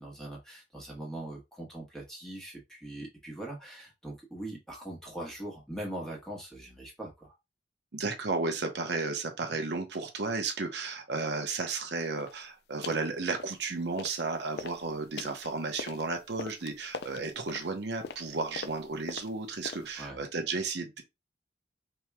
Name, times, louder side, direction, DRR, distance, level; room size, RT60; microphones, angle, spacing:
voice 1, 0.0-7.3 20.0-20.2, right 1 dB, 5° left, 1.1 m, -41 dB
voice 2, 7.9-21.0, right 3 dB, 70° right, 0.8 m, -33 dB
sound 1, 12.2-12.4 12.8-13.1 13.4-14.2 14.5-20.1, left 5 dB, 65° left, 0.4 m, -43 dB
4.4 x 3.0 x 2.2 m
head